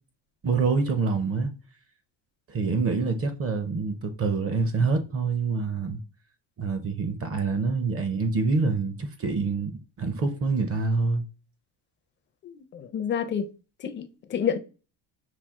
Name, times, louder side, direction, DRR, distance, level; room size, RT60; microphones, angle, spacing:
voice 1, 0.4-1.5 2.5-6.0 6.6-11.2, right 4 dB, 30° right, 0.6 m, -26 dB
voice 2, 12.4-13.5 13.8-14.6, left 8 dB, 25° left, 0.4 m, -29 dB
5.9 x 2.4 x 3.5 m
cardioid pair, 140°, 47 cm